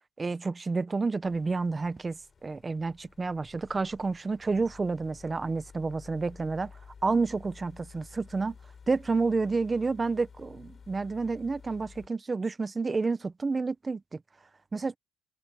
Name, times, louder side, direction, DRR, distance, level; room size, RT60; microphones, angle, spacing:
voice 1, 0.2-8.6 8.9-14.2 14.7-15.0, right 4 dB, 25° right, 1.0 m, -30 dB
sound 1, 1.2-12.1, left 6 dB, 40° left, 4.9 m, -52 dB
cardioid pair, 90°, 0 cm